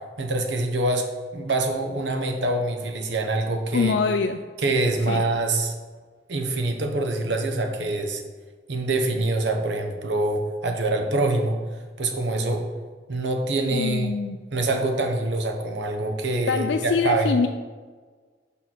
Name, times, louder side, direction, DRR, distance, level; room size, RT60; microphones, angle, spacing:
voice 1, 0.2-1.1 1.3-4.0 4.6-5.8 6.3-8.2 8.7-11.6 12.0-12.7 13.1-14.1 14.5-17.3, right 2 dB, 90° right, 4 dB, 0.9 m, -25 dB
voice 2, 3.7-4.4 5.1-5.2 13.7-14.4 16.5-17.5, left 5 dB, 80° left, 7 dB, 0.4 m, -24 dB
5.5 x 4.4 x 6.1 m, 1.5 s
head